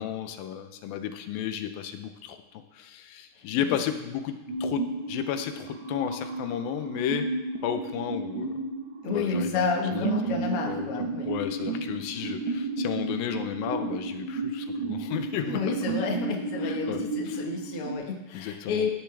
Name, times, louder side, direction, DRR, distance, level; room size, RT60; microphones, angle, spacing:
voice 1, 0.0-7.3 7.6-8.6 9.1-9.7 9.9-15.8 16.6-17.4 18.3-18.9, left 9 dB, 90° left, 8 dB, 2.6 m, -33 dB
voice 2, 3.4-3.8 9.0-11.3 11.7-11.8 15.4-18.9, left 5 dB, 50° left, 1 dB, 2.0 m, -31 dB
sound 1, 4.5-17.9, right 3 dB, 55° right, 1.4 m, -32 dB
15.0 x 10.5 x 3.4 m, 1.0 s
omnidirectional pair, 4.0 m